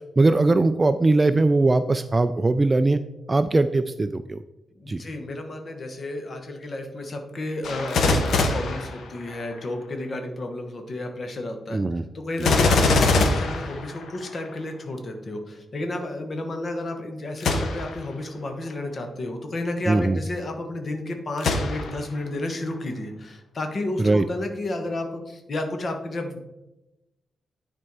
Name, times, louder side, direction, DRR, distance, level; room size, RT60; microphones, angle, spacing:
voice 1, 0.2-3.0 3.3-4.4 4.9-5.0 11.7-12.0 12.4-12.7 19.9-20.2 24.0-24.2, right 2 dB, 20° right, 11 dB, 0.3 m, -20 dB
voice 2, 4.7-26.4, left 2 dB, 40° left, 4 dB, 1.2 m, -32 dB
Gunshot gunfire, 7.6-9.6 12.4-14.5 17.4-18.0 18.7-18.8 21.4-22.2 22.7-22.8, left 3 dB, 80° left, 1.1 m, -23 dB
10.0 x 4.5 x 4.7 m, 0.96 s
wide cardioid pair, 145°, 0 cm